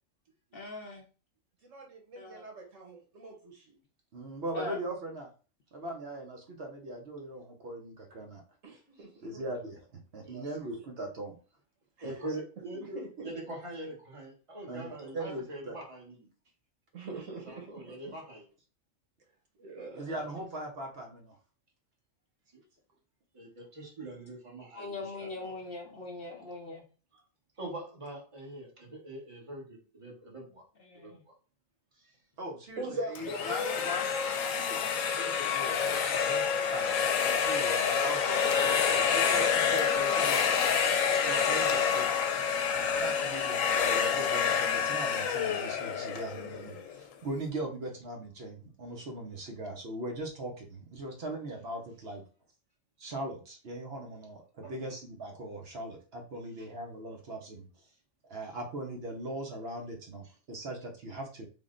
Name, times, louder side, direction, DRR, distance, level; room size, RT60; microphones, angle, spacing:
voice 1, 0.5-1.0 2.2-2.4 4.5-4.8 24.7-26.8 30.8-31.2, left 3 dB, 55° left, 1 dB, 0.7 m, -41 dB
voice 2, 1.6-3.7 8.6-9.1 12.0-12.2 12.7-13.3 15.0-15.1 16.9-18.2 19.6-20.2 32.8-33.8 40.7-40.8 41.9-42.0, right 2 dB, 80° right, 1 dB, 1.4 m, -42 dB
voice 3, 4.1-5.3 5.7-8.4 9.2-11.4 14.7-14.9 15.1-15.8 19.9-21.4 32.4-34.1 34.4-36.0 36.7-36.9 37.2-40.5 41.2-42.1 43.0-52.2 53.0-57.9 58.3-61.4, right 1 dB, 60° right, 2 dB, 0.9 m, -40 dB
voice 4, 10.2-10.8 12.0-16.3 17.1-18.5 20.1-20.4 22.5-22.6 23.3-24.9 25.2-25.6 27.6-30.6 31.0-31.3 31.9-32.2 36.1-36.5 54.6-54.9, right 1 dB, 30° right, -1 dB, 1.0 m, -43 dB
sound 1, 33.2-47.0, left 7 dB, 90° left, 1.0 m, -28 dB
3.5 x 2.1 x 3.7 m, 0.36 s
omnidirectional pair, 1.3 m